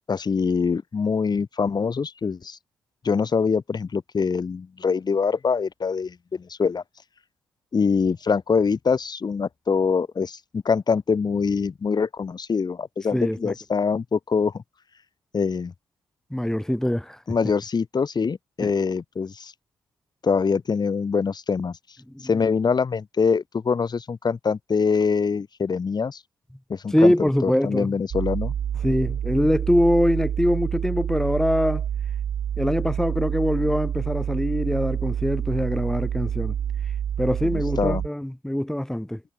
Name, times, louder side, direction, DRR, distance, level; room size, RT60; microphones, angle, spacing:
voice 1, 0.1-2.6 3.0-6.8 7.7-14.6 15.3-15.7 17.3-19.5 20.2-21.8 22.2-26.2 26.7-28.5 37.4-38.0, left 5 dB, 40° left, 1.5 m, -24 dB
voice 2, 13.1-13.5 16.3-17.2 18.6-18.7 22.1-22.3 26.9-28.0 28.8-31.8 32.6-36.5 37.2-39.2, left 1 dB, 5° left, 2.7 m, -23 dB
sound 1, 28.1-38.1, right 9 dB, 60° right, 1.1 m, -28 dB
hypercardioid pair, 40°, 10 cm